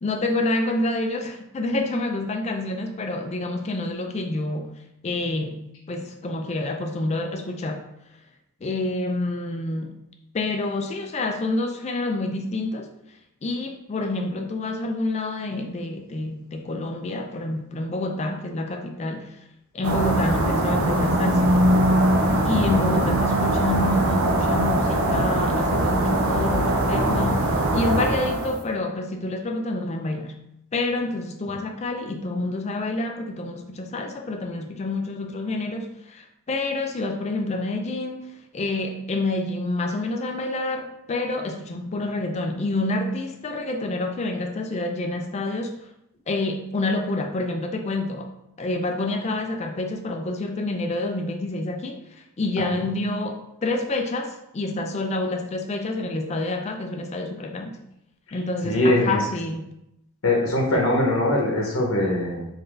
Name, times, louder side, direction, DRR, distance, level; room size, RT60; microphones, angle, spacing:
voice 1, 0.0-7.9 8.6-10.0 10.3-12.9 13.4-19.4 19.7-21.5 22.4-30.4 30.7-45.8 46.3-48.3 48.6-52.0 52.4-57.8 58.3-59.7, left 2 dB, 30° left, 4 dB, 0.4 m, -28 dB
sound 1, 19.8-28.6, right 1 dB, 70° right, 0.6 m, -21 dB
voice 2, 58.6-59.2 60.2-62.5, left 1 dB, 75° left, -1 dB, 0.8 m, -22 dB
3.9 x 2.6 x 3.2 m, 0.82 s
head